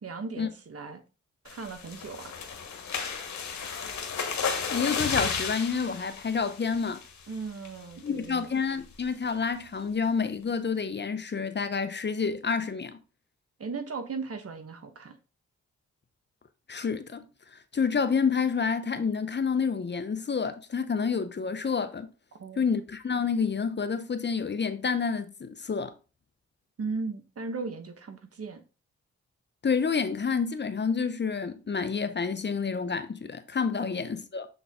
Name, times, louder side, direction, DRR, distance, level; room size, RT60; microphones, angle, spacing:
voice 1, 0.0-1.0 1.4-2.4 7.3-8.5 13.6-15.1 22.4-22.6 26.8-28.6 33.8-34.0, right 4 dB, 55° right, 1.2 m, -37 dB
sound 1, 1.5-7.2 7.6-7.9 8.2-8.3 8.7-9.0, left 6 dB, 70° left, 1.3 m, -33 dB
voice 2, 4.7-7.0 8.0-13.0 16.7-17.3 17.5-22.1 22.6-25.9 29.6-34.5, left 5 dB, 35° left, 0.8 m, -29 dB
7.2 x 3.8 x 3.6 m
supercardioid pair, 50°, 29 cm